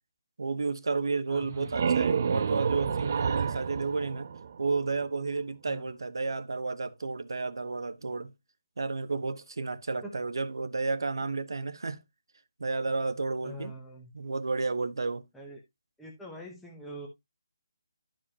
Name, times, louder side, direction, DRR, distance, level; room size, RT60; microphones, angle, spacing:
voice 1, 0.4-4.3 4.6-8.3 8.8-12.0 12.6-13.7 14.1-15.3, right 3 dB, 80° right, 0.9 m, -32 dB
voice 2, 1.3-1.7 5.6-5.9 10.0-10.2 13.4-14.1 15.3-15.6 16.0-17.1, equal, ahead, 0.9 m, -44 dB
sound 1, 1.3-5.0, right 6 dB, 35° right, 0.5 m, -30 dB
11.5 x 4.9 x 2.8 m
hypercardioid pair, 175°, 2 cm